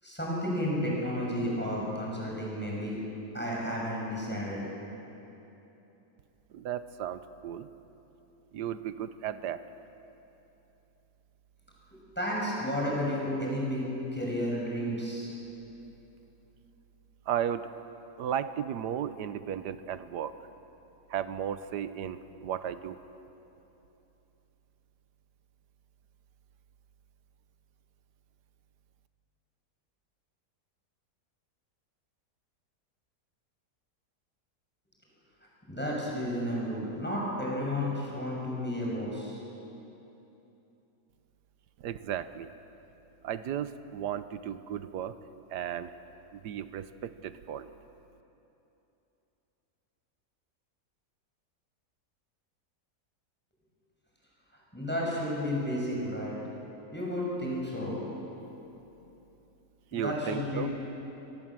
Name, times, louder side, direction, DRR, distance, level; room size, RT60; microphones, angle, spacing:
voice 1, 0.0-3.0 3.3-4.6 11.9-15.3 35.7-39.4 54.7-56.4 56.9-58.2 59.9-60.7, equal, 5° left, -4 dB, 6.4 m, -32 dB
voice 2, 6.5-7.7 8.5-9.6 17.3-17.7 18.2-20.4 21.1-23.0 41.8-42.5 43.2-45.1 45.5-45.9 46.3-47.7 59.9-60.7, right 9 dB, 85° right, 12 dB, 1.4 m, -35 dB
25.0 x 18.5 x 7.6 m, 3.0 s
omnidirectional pair, 1.8 m